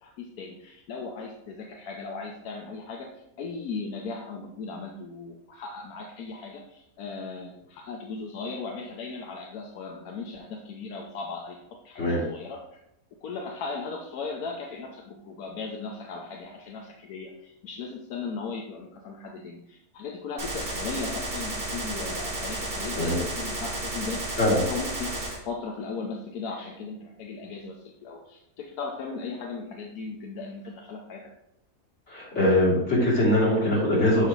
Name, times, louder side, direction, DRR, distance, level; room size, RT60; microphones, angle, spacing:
voice 1, 0.0-3.1 3.4-11.6 11.8-12.6 13.2-31.3, left 4 dB, 80° left, 1 dB, 1.2 m, -37 dB
Gunshot gunfire, 20.4-25.4, right 1 dB, 60° right, 2.5 m, -32 dB
voice 2, 32.1-34.3, left 1 dB, 45° left, -8 dB, 3.3 m, -22 dB
6.2 x 5.5 x 3.7 m, 0.82 s
omnidirectional pair, 1.6 m